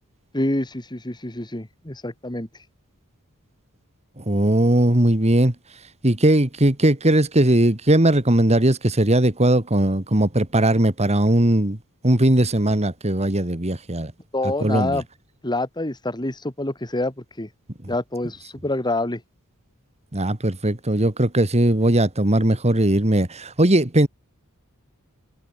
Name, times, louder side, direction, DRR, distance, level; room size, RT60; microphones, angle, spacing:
voice 1, 0.3-2.5 14.3-15.0 15.4-17.5 17.9-19.2, left 2 dB, 20° left, 2.8 m, -26 dB
voice 2, 4.2-5.5 6.0-11.8 12.0-14.1 14.4-15.0 20.1-24.1, right 1 dB, 30° right, 2.3 m, -19 dB
head